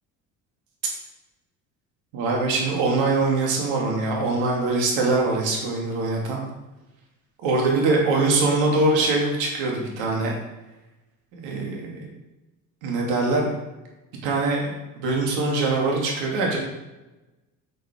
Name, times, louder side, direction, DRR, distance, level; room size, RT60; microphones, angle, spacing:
voice 1, 2.1-6.4 7.4-10.3 11.3-12.1 12.8-13.6 14.2-16.6, right 3 dB, 70° right, -1 dB, 2.8 m, -23 dB
6.9 x 6.4 x 5.1 m, 1.0 s
hypercardioid pair, 60°, 46 cm